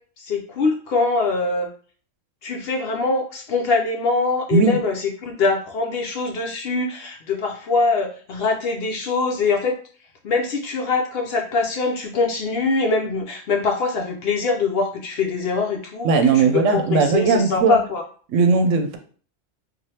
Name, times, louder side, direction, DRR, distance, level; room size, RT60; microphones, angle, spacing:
voice 1, 0.2-1.7 2.4-9.8 10.2-18.0, left 3 dB, 65° left, 2 dB, 0.7 m, -23 dB
voice 2, 16.0-17.8 18.3-19.0, right 4 dB, 75° right, 5 dB, 0.9 m, -18 dB
3.2 x 2.4 x 2.7 m, 0.43 s
omnidirectional pair, 1.3 m